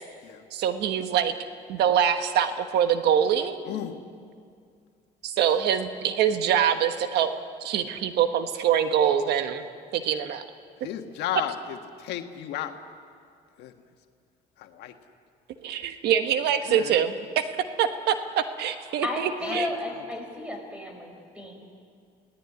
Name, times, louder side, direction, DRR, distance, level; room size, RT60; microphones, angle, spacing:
voice 1, 0.5-1.3 1.7-3.6 5.2-7.3 7.6-9.6 9.9-10.4 15.6-17.4 17.8-19.7, right 9 dB, 75° right, 8 dB, 1.3 m, -24 dB
voice 2, 3.6-4.1 10.8-12.7 13.6-13.7 14.6-15.0 16.7-17.0 19.5-19.6, left 11 dB, 80° left, 5 dB, 1.6 m, -34 dB
voice 3, 19.0-21.5, left 1 dB, 5° right, 3 dB, 5.7 m, -33 dB
24.0 x 17.5 x 9.6 m, 2.3 s
cardioid pair, 110°, 17 cm